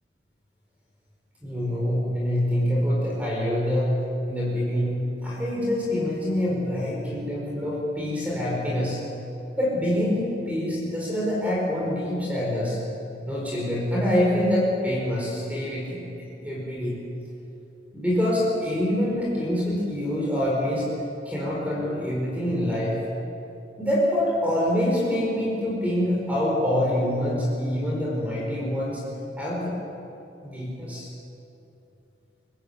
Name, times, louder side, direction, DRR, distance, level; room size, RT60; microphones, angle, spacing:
voice 1, 1.4-3.9 4.3-9.0 9.6-12.8 13.3-16.0 16.4-17.0 17.9-20.9 21.2-23.0 23.8-29.0 29.4-29.8 30.4-31.1, left 1 dB, 10° right, -4 dB, 5.1 m, -25 dB
24.0 x 20.5 x 8.7 m, 2.8 s
head